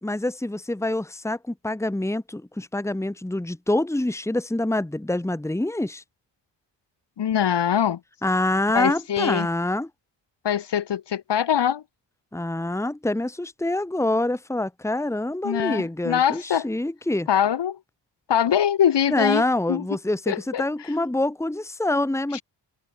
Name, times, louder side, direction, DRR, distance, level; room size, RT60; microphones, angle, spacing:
voice 1, 0.0-6.0 8.2-9.9 12.3-17.3 19.1-22.4, left 1 dB, 5° left, 2.0 m, -26 dB
voice 2, 7.2-8.0 8.7-9.5 10.4-11.8 15.4-16.7 17.3-17.8 18.3-19.4 19.7-19.8 20.3-20.6, left 9 dB, 65° left, 2.1 m, -23 dB
wide cardioid pair, 140°, 45 cm